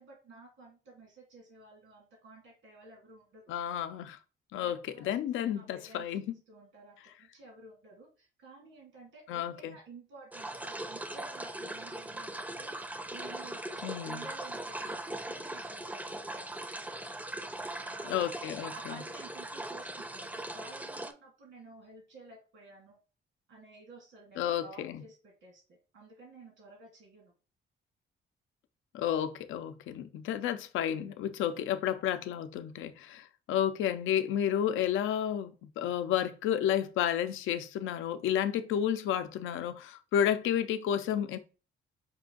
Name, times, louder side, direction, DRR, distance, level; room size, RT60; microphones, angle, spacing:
voice 1, 0.0-3.5 4.6-5.2 5.5-6.1 6.5-16.9 17.7-18.2 18.7-23.0 23.5-27.3, right 3 dB, 80° right, 2.4 m, -53 dB
voice 2, 3.5-4.2 4.5-6.2 9.3-9.7 13.8-14.2 18.1-18.9 24.4-25.0 28.9-41.4, left 10 dB, 85° left, 0.5 m, -31 dB
sound 1, 10.3-21.1, right 1 dB, 10° right, 0.5 m, -40 dB
5.4 x 2.5 x 3.7 m
cardioid pair, 90°, 20 cm